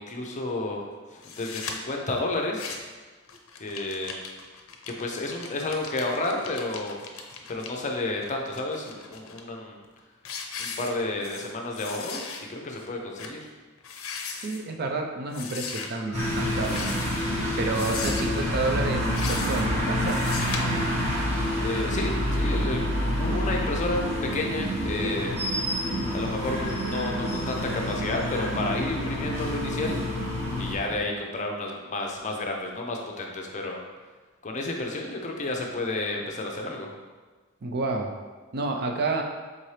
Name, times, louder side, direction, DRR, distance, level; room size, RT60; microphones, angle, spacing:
voice 1, 0.0-2.7 3.6-4.2 4.9-7.0 7.5-9.8 10.6-12.2 12.5-13.5 21.6-24.1 24.3-25.3 26.1-30.0 30.6-33.8 34.4-36.9, left 2 dB, 35° left, 1 dB, 0.6 m, -31 dB
sound 1, 1.2-1.7 2.4-3.0 3.3-7.7 8.2-9.4 9.8-10.0 10.2-11.5 11.8-12.4 12.8-12.9 13.2-13.4 13.8-14.6 15.3-15.9 16.6-17.3 17.7-18.4 19.0-19.7 20.0-20.6, left 6 dB, 80° left, 0.5 m, -37 dB
voice 2, 14.4-16.8 17.6-20.2 37.6-38.1 38.5-39.2, right 3 dB, 50° right, 2 dB, 0.5 m, -29 dB
sound 2, 16.1-30.7, equal, 30° right, 1.3 m, -28 dB
4.2 x 3.8 x 3.2 m, 1.4 s
head